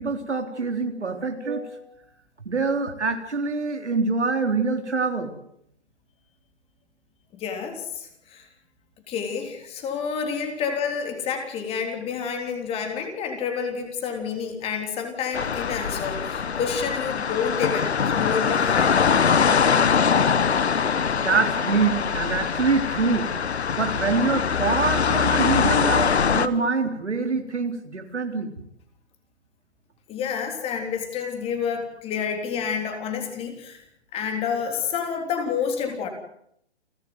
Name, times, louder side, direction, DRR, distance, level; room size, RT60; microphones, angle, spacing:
voice 1, 0.0-1.9 2.5-5.3 21.2-23.3 23.8-28.5, right 4 dB, 85° right, 5 dB, 3.9 m, -25 dB
voice 2, 7.3-8.5 9.1-19.0 30.1-33.8 34.1-36.1, left 6 dB, 15° left, 5 dB, 3.5 m, -29 dB
sound 1, 15.3-26.5, left 6 dB, 70° left, 1.5 m, -23 dB
30.0 x 12.5 x 9.5 m, 0.74 s
figure-of-eight pair, 140°, 34 cm